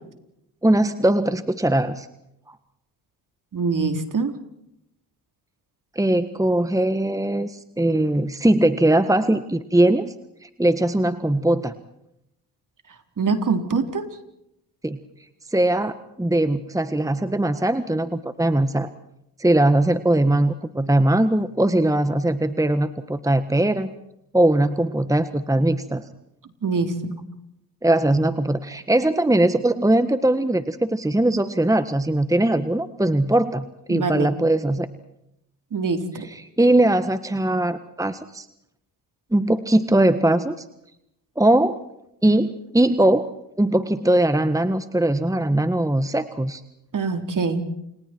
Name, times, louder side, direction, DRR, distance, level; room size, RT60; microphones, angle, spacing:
voice 1, 0.6-2.1 2.5-2.6 5.9-10.1 10.4-11.7 14.8-15.0 15.5-18.9 19.4-23.9 24.3-26.0 27.8-34.9 36.1-38.5 39.3-40.5 41.4-41.8 42.2-43.3 43.6-46.6, right 1 dB, 10° right, 11 dB, 1.6 m, -20 dB
voice 2, 3.5-4.3 13.2-14.1 26.6-27.2 33.9-34.3 35.7-36.3 46.9-47.7, right 4 dB, 45° right, 6 dB, 4.1 m, -24 dB
29.5 x 29.0 x 4.6 m, 0.80 s
supercardioid pair, 60°, 43 cm